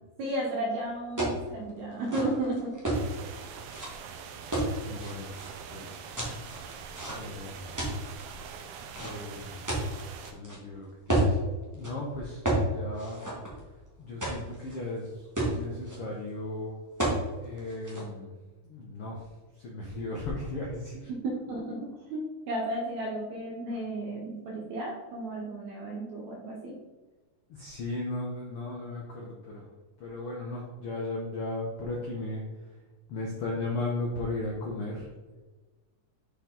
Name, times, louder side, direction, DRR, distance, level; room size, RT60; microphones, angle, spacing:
voice 1, 0.2-3.1 21.1-26.8, right 1 dB, 65° right, -2 dB, 2.1 m, -34 dB
sound 1, 1.2-1.4 1.9-3.0 3.7-3.9 4.5-5.5 6.2-7.4 7.8-8.2 8.9-10.6 11.1-11.3 11.7-11.9 12.4-12.7 13.0-13.8 14.2-14.8 15.1-15.2 15.4-16.0 17.0-17.2 17.6-18.0, right 1 dB, 15° right, 0.6 m, -30 dB
sound 2, 2.9-10.3, right 6 dB, 85° right, 2.4 m, -43 dB
voice 2, 4.8-5.3 5.7-6.0 7.1-7.7 9.0-9.7 10.2-11.4 11.7-13.2 14.0-16.8 17.4-18.3 18.6-19.2 19.6-21.1 27.5-29.7 30.0-32.4 33.1-35.1, left 2 dB, 75° left, -2 dB, 1.3 m, -36 dB
7.8 x 4.5 x 3.9 m, 1.2 s
omnidirectional pair, 3.9 m